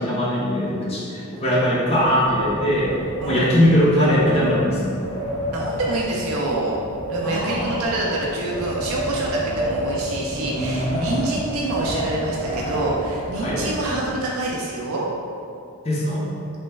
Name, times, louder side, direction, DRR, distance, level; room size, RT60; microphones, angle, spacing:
voice 1, 0.0-3.0 3.3-4.8 7.2-8.1 10.3-11.2 13.4-13.6 15.8-16.2, equal, 30° left, -6 dB, 0.5 m, -21 dB
Wind, 1.9-14.5, equal, 55° left, 1.0 m, -30 dB
voice 2, 5.5-6.8 7.1-15.1, right 2 dB, 70° right, -3 dB, 0.4 m, -26 dB
3.1 x 2.1 x 3.2 m, 2.5 s
head